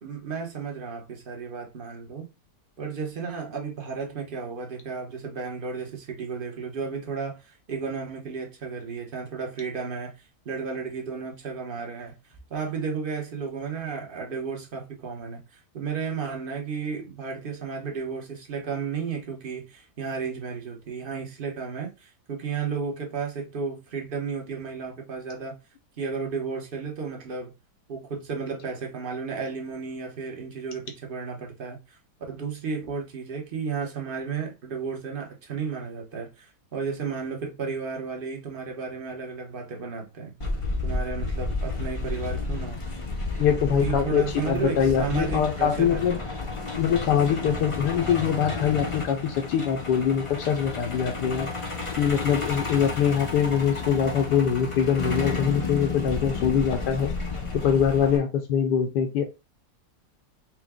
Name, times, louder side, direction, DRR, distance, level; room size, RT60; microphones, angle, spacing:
voice 1, 0.0-2.3 2.8-10.1 10.4-12.1 12.5-25.6 26.0-27.5 27.9-32.0 32.3-40.3 40.8-42.8 43.7-46.3, right 5 dB, 40° right, 0.9 m, -33 dB
Truck, 40.4-58.2, left 3 dB, 40° left, 0.4 m, -32 dB
voice 2, 43.4-46.2 46.8-51.5 52.0-57.1 57.6-59.2, left 8 dB, 80° left, 1.2 m, -23 dB
4.6 x 2.2 x 3.5 m
omnidirectional pair, 1.8 m